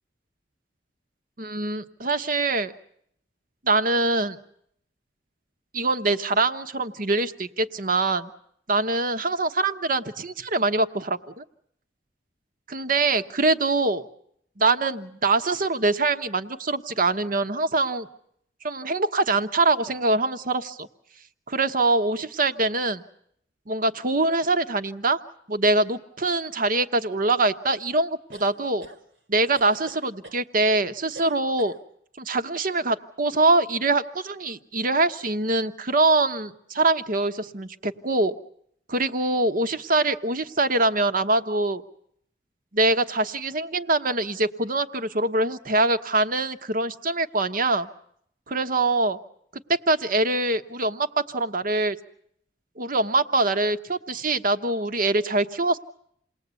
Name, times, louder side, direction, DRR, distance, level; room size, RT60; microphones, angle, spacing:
voice 1, 1.4-2.7 3.6-4.4 5.7-8.3 8.7-11.4 12.7-14.1 14.6-18.1 18.6-20.9 21.5-23.0 23.7-25.2 25.5-28.9 29.3-31.7 32.2-38.3 38.9-41.8 42.7-47.9 48.5-49.2 49.7-52.0 52.8-55.8, right 2 dB, 50° right, 9 dB, 1.1 m, -24 dB
sound 1, 28.3-29.0 29.5-30.4 31.2-31.8, right 2 dB, 90° right, 2.4 m, -44 dB
28.5 x 19.5 x 8.3 m, 0.70 s
head